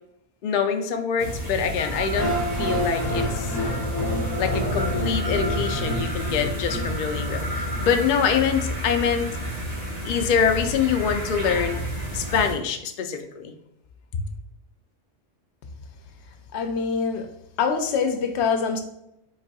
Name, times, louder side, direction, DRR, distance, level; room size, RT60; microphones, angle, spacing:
voice 1, 0.4-3.5 4.4-9.3 10.0-11.8 12.1-13.5, left 7 dB, 60° left, 6 dB, 0.5 m, -25 dB
sound 1, 1.2-12.5, equal, 35° right, 1.4 m, -30 dB
sound 2, 2.1-8.2, equal, 20° left, 1.7 m, -29 dB
voice 2, 16.5-17.3 17.6-18.8, left 5 dB, 80° left, 7 dB, 0.9 m, -24 dB
5.2 x 4.0 x 2.3 m, 0.83 s
omnidirectional pair, 1.1 m